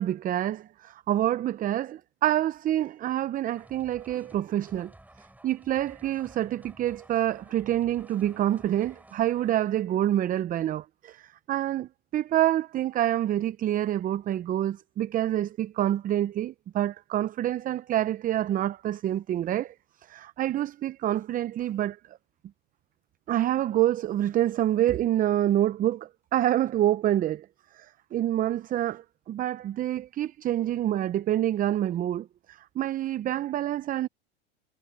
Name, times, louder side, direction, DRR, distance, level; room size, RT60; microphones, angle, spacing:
voice 1, 0.0-4.9 5.4-19.7 20.1-22.0 23.3-27.5 27.8-27.9 28.1-34.1, right 12 dB, 25° right, 0.6 m, -27 dB
sound 1, 3.4-10.0, right 1 dB, 5° right, 7.9 m, -54 dB
hypercardioid pair, 110°, 33 cm